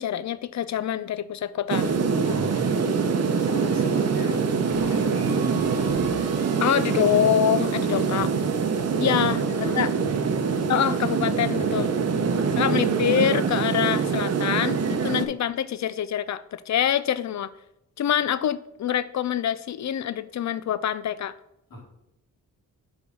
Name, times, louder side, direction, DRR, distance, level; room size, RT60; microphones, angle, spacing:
voice 1, 0.0-1.9 6.6-8.3 9.0-9.4 9.8-9.9 10.7-11.9 12.5-17.5 18.0-21.3, left 10 dB, 55° left, 15 dB, 0.5 m, -25 dB
sound 1, 1.7-15.3, right 5 dB, 45° right, 0.8 m, -24 dB
voice 2, 2.2-6.1 7.8-8.3 8.9-10.1 12.3-13.1 21.7-21.8, left 2 dB, 70° left, -3 dB, 2.1 m, -37 dB
sound 2, 4.7-8.3, right 4 dB, 80° right, 1.3 m, -41 dB
4.9 x 4.8 x 5.3 m, 0.82 s
cardioid pair, 70°, 35 cm